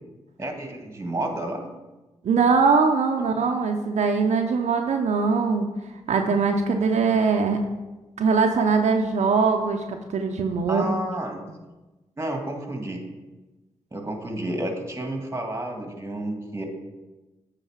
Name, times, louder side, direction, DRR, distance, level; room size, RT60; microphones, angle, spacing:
voice 1, 0.4-1.7 10.7-11.4 12.2-13.0 13.9-16.7, right 1 dB, 20° right, 3 dB, 1.9 m, -30 dB
voice 2, 2.2-5.7 6.1-7.6 8.2-11.0, right 5 dB, 75° right, 3 dB, 0.7 m, -21 dB
9.0 x 4.1 x 5.7 m, 1.1 s
cardioid pair, 55°, 12 cm